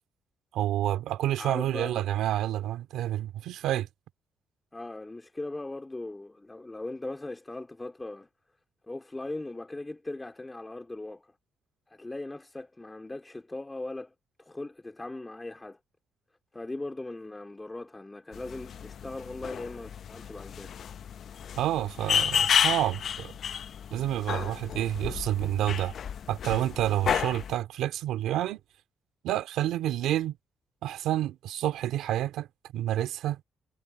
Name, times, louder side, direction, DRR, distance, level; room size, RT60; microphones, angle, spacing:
voice 1, 0.5-3.9 21.5-23.3 23.9-25.9 26.3-28.6 29.2-30.4 30.8-32.5 32.7-33.4, right 12 dB, 85° right, 2.3 m, -29 dB
voice 2, 1.4-2.0 4.7-8.3 8.9-11.3 11.9-14.1 14.4-15.8 16.5-20.7, left 2 dB, 15° left, 3.3 m, -39 dB
sound 1, 18.3-27.6, left 8 dB, 60° left, 0.6 m, -31 dB
cardioid pair, 90°, 0 cm